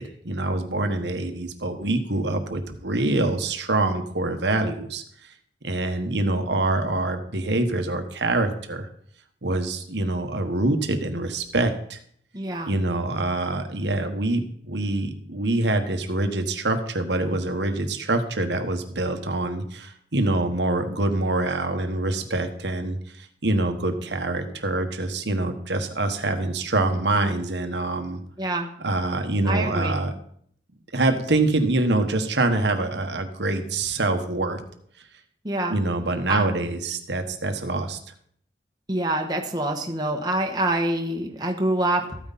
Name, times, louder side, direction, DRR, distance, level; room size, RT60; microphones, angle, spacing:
voice 1, 0.0-5.3 5.6-8.9 9.4-12.0 12.6-28.2 28.8-30.1 30.9-34.6 35.7-38.0, right 2 dB, 80° right, 6 dB, 1.4 m, -25 dB
voice 2, 12.3-12.8 28.4-28.7 29.5-30.0 35.4-35.8 36.3-36.4 38.9-42.2, right 1 dB, 25° right, 2 dB, 1.3 m, -26 dB
14.0 x 9.3 x 4.2 m, 0.65 s
head